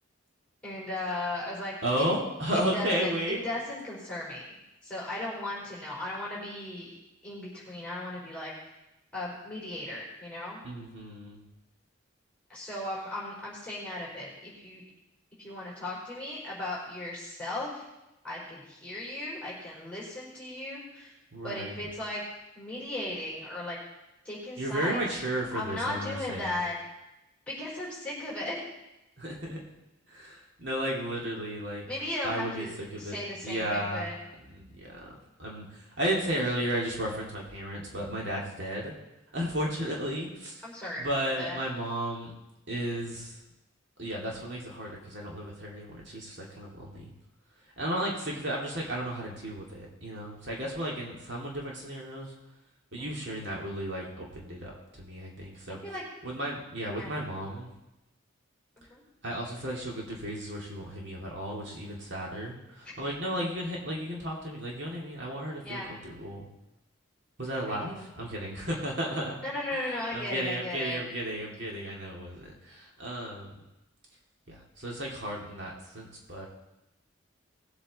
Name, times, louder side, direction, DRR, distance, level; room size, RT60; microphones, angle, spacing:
voice 1, 0.6-2.0 2.5-4.6 4.8-6.9 7.2-8.5 9.1-10.6 12.5-14.8 15.4-17.8 18.2-21.1 21.4-22.2 22.5-23.8 24.2-25.0 25.5-26.7 27.5-28.6 31.9-32.7 33.0-34.1 40.6-41.0 41.4-41.6 53.0-53.1 55.7-56.0 57.0-57.1 58.8-59.0 65.6-65.9 67.7-68.1 69.4-71.0, left 1 dB, 5° left, -6 dB, 4.3 m, -36 dB
voice 2, 1.8-3.4 10.6-11.4 21.3-21.8 24.6-26.6 29.2-29.6 30.1-31.9 32.2-33.2 33.4-34.1 34.5-38.9 39.3-40.6 41.0-42.3 42.7-43.4 44.0-47.1 47.8-52.3 52.9-55.8 56.2-57.7 59.2-66.5 67.4-69.4 70.1-73.6 74.5-76.5, right 1 dB, 60° right, -2 dB, 2.4 m, -34 dB
19.0 x 8.1 x 4.1 m, 0.95 s
head